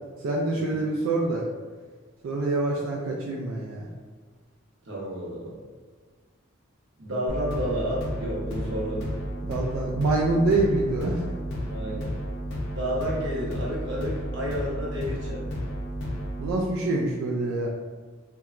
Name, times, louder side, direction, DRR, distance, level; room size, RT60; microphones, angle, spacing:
voice 1, 0.2-1.5 2.2-3.9 9.4-11.2 16.4-17.7, right 2 dB, 90° right, -2 dB, 0.3 m, -25 dB
voice 2, 4.8-5.6 7.0-9.0 11.7-12.1 12.7-15.5, equal, 60° right, -4 dB, 0.7 m, -31 dB
sound 1, 7.3-16.5, equal, 55° left, 0.5 m, -32 dB
2.8 x 2.2 x 2.3 m, 1.4 s
head